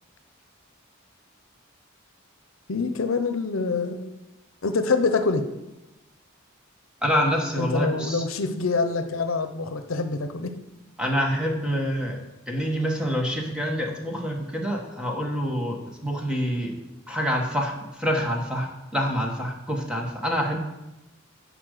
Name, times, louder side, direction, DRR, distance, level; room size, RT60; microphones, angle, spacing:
voice 1, 2.7-4.1 4.6-5.5 7.6-10.6, left 4 dB, 75° left, 9 dB, 0.8 m, -25 dB
voice 2, 7.0-8.2 11.0-12.2 12.5-16.7 17.1-20.6, equal, 5° right, 1 dB, 1.3 m, -26 dB
10.0 x 5.3 x 6.6 m, 1.0 s
head